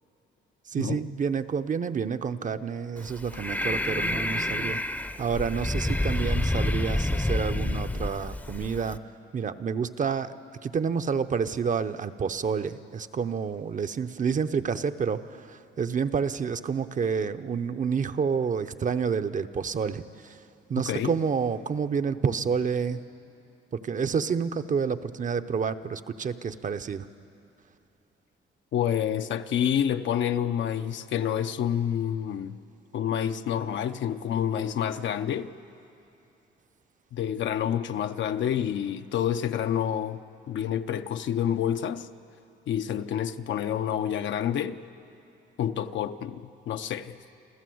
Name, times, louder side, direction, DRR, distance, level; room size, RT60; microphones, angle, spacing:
voice 1, 0.7-9.0 9.3-10.3 10.6-20.4 20.7-23.1 23.7-27.1, right 6 dB, 40° right, 0.7 m, -29 dB
Breathing, 3.0-9.0, left 1 dB, 10° left, 0.7 m, -28 dB
voice 2, 28.7-32.6 32.9-35.5 37.1-40.2 40.5-42.1 42.7-44.8 45.6-47.2, left 9 dB, 70° left, 0.8 m, -28 dB
27.5 x 14.5 x 7.8 m
cardioid pair, 90°, 20 cm